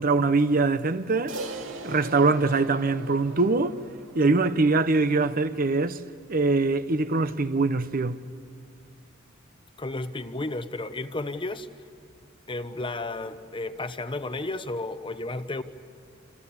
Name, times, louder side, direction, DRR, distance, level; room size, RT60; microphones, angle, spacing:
voice 1, 0.0-1.4 1.8-3.8 4.1-6.0 6.3-8.2, right 3 dB, 45° right, 0.8 m, -23 dB
Crash cymbal, 1.3-5.9, right 2 dB, 75° right, 2.6 m, -41 dB
voice 2, 9.8-11.7 12.5-15.6, left 2 dB, 25° left, 0.9 m, -32 dB
28.5 x 28.0 x 7.3 m
head